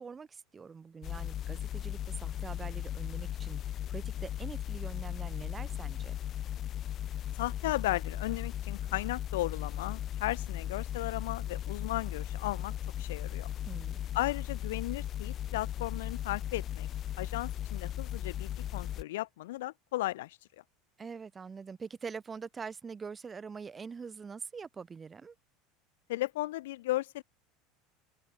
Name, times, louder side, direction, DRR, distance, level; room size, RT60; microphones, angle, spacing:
voice 1, 0.0-6.1 13.7-14.0 21.0-25.3, right 5 dB, 25° right, 1.1 m, -44 dB
sound 1, 1.0-19.0, left 11 dB, 45° left, 0.3 m, -37 dB
voice 2, 7.3-12.7 13.0-13.5 14.1-16.9 17.2-20.4 26.1-27.2, left 17 dB, 85° left, 1.0 m, -35 dB
supercardioid pair, 105°, 0 cm